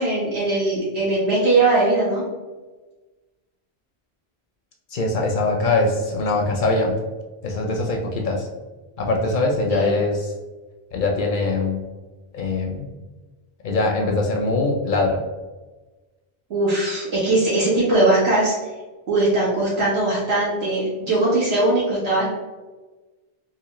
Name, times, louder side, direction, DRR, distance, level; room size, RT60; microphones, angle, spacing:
voice 1, 0.0-2.2 9.7-10.0 16.5-18.5 19.1-22.2, right 2 dB, 85° right, -8 dB, 1.9 m, -20 dB
voice 2, 4.9-7.0 7.4-8.5 9.0-10.3 10.9-11.8 12.3-12.9 13.6-15.2, left 2 dB, 60° left, 1 dB, 0.6 m, -22 dB
3.8 x 2.4 x 3.0 m, 1.2 s
omnidirectional pair, 1.1 m